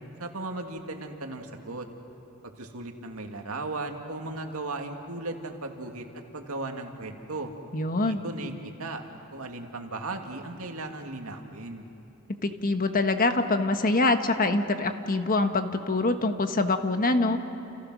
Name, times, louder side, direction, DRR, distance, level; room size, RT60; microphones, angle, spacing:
voice 1, 0.2-1.9 2.6-7.5 8.0-9.0 9.3-11.8, right 2 dB, 80° right, 3 dB, 2.3 m, -36 dB
voice 2, 7.7-8.2 12.3-17.4, left 2 dB, 40° left, 7 dB, 1.3 m, -25 dB
29.5 x 29.0 x 6.3 m, 2.9 s
head